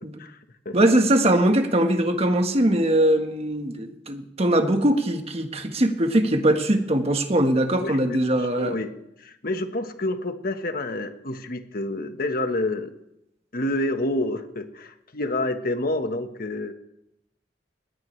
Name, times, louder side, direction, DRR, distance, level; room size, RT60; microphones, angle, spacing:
voice 1, 0.7-8.7, right 1 dB, 35° right, 6 dB, 1.5 m, -21 dB
voice 2, 7.8-8.9 9.2-12.9 13.5-16.7, left 1 dB, 55° left, 7 dB, 1.4 m, -28 dB
21.0 x 17.0 x 3.3 m, 0.85 s
head